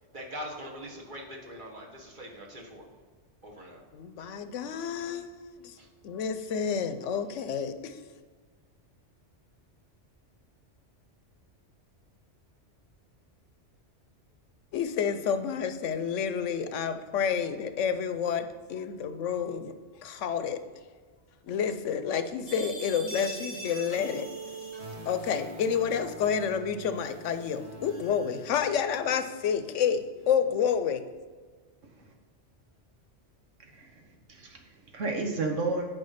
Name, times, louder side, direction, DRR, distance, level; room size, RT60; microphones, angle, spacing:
voice 1, 0.1-2.8 3.4-3.8 5.8-5.9, equal, 40° right, -1 dB, 1.6 m, -42 dB
voice 2, 3.9-5.7 6.0-8.0 14.7-19.7 20.0-20.6 21.5-24.3 25.1-31.0, left 7 dB, 85° left, 10 dB, 1.0 m, -29 dB
sound 1, 22.5-29.2, right 2 dB, 65° right, 2.0 m, -43 dB
voice 3, 33.6-35.9, right 3 dB, 90° right, 3 dB, 1.6 m, -33 dB
9.2 x 5.1 x 5.8 m, 1.5 s
omnidirectional pair, 1.2 m